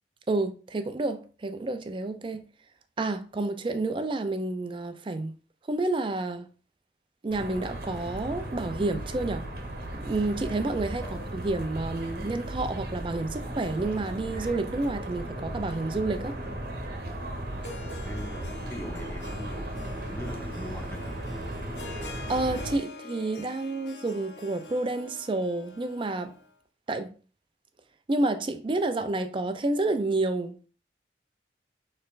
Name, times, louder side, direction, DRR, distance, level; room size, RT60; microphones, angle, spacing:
voice 1, 0.3-2.4 3.0-5.3 5.7-6.5 7.2-9.4 9.9-16.4 22.1-26.3 26.9-27.1 28.1-30.7, right 2 dB, 30° right, 0.4 m, -29 dB
sound 1, 7.3-22.8, right 1 dB, 55° right, 1.0 m, -36 dB
Harp, 17.5-26.5, left 3 dB, 85° left, 0.7 m, -46 dB
voice 2, 18.0-21.5, left 1 dB, 10° left, 0.8 m, -42 dB
6.4 x 3.2 x 2.5 m
head